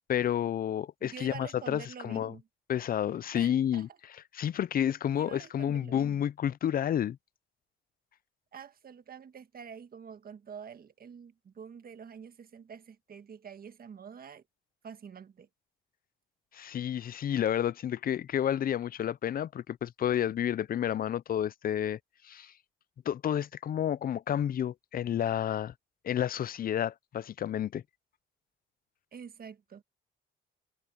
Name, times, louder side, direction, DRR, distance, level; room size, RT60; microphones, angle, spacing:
voice 1, 0.1-2.3 2.7-3.9 4.3-7.2 16.5-22.0 22.2-22.5 23.1-25.7 26.0-27.8, left 10 dB, 45° left, 0.5 m, -30 dB
voice 2, 1.0-2.4 3.3-3.9 5.2-6.2 8.5-14.4 14.8-15.5 29.1-29.8, right 7 dB, 50° right, 1.6 m, -47 dB
cardioid pair, 90°, 20 cm